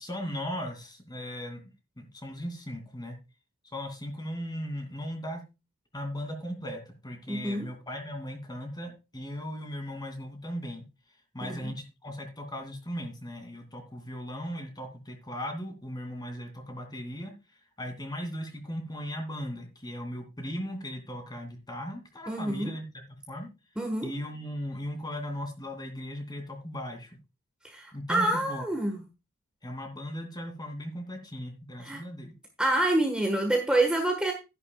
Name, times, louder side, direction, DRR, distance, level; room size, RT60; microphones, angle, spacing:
voice 1, 0.0-1.6 2.0-3.2 3.7-5.4 5.9-10.8 11.3-17.3 17.8-22.8 23.3-23.5 24.0-27.1 27.9-28.6 29.6-32.3, equal, 20° left, 6 dB, 2.7 m, -37 dB
voice 2, 7.3-7.7 11.4-11.6 22.3-22.7 23.8-24.1 27.6-29.0 31.8-32.0 32.6-34.3, right 1 dB, 5° right, 3 dB, 1.4 m, -27 dB
12.5 x 10.5 x 2.3 m, 0.27 s
head